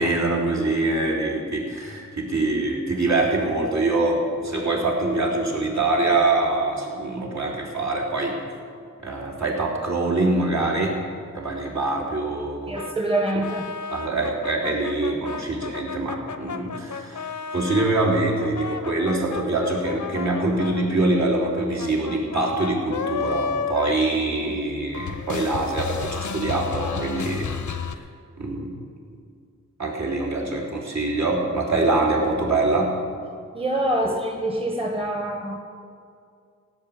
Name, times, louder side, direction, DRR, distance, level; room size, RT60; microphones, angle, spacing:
voice 1, 0.0-8.4 9.0-11.0 11.3-12.8 13.9-27.5 27.8-28.0 28.4-28.7 29.8-33.0 34.1-34.2, right 2 dB, 60° right, -4 dB, 3.5 m, -24 dB
sound 1, 12.7-17.9 18.4-24.7 24.9-28.0, left 5 dB, 65° left, 0.8 m, -32 dB
voice 2, 12.7-13.7 33.5-35.6, right 1 dB, 20° right, 2 dB, 1.3 m, -25 dB
17.0 x 6.1 x 8.7 m, 2.3 s
wide cardioid pair, 70°, 32 cm